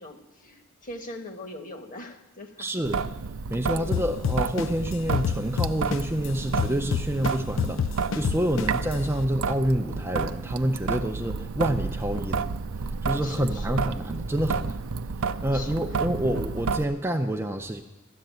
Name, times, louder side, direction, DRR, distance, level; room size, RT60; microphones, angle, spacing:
voice 1, 0.0-2.7 3.7-4.1 8.4-8.7 13.2-13.9 15.5-15.8, left 1 dB, 40° left, 6 dB, 1.2 m, -41 dB
voice 2, 2.6-3.0 3.5-12.5 12.8-14.8 15.2-17.8, equal, 10° right, 4 dB, 0.5 m, -28 dB
Traffic noise roadway noise / Drip / Trickle dribble, 2.8-16.8, right 5 dB, 75° right, 0.5 m, -31 dB
sound 1, 3.9-6.3 6.6-8.9, left 7 dB, 65° left, 0.4 m, -27 dB
13.0 x 7.8 x 9.3 m, 1.0 s
head